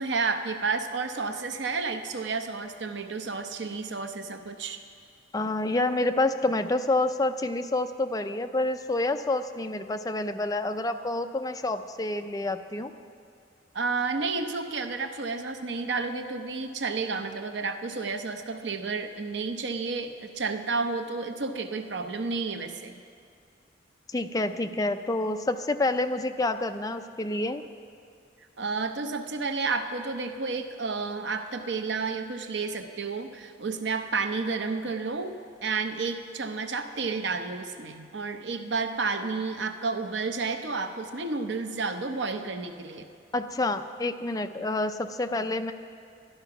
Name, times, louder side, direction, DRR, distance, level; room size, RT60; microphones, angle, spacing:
voice 1, 0.0-4.8 13.7-23.0 28.6-35.3 35.6-43.1, right 4 dB, 65° right, 7 dB, 0.7 m, -31 dB
voice 2, 5.3-12.9 24.1-27.6 43.3-45.7, left 2 dB, 20° left, 8 dB, 0.4 m, -28 dB
12.5 x 11.0 x 5.9 m, 2.3 s
head